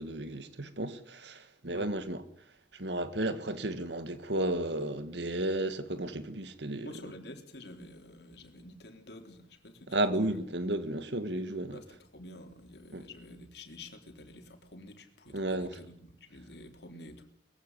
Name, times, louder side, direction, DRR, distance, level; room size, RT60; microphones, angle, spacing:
voice 1, 0.0-2.2 2.8-6.9 9.9-11.8 12.9-13.0 15.3-15.8, right 1 dB, 75° right, 2.0 m, -33 dB
voice 2, 6.8-10.4 11.7-17.2, left 1 dB, 65° left, 3.7 m, -49 dB
22.5 x 16.5 x 8.2 m
head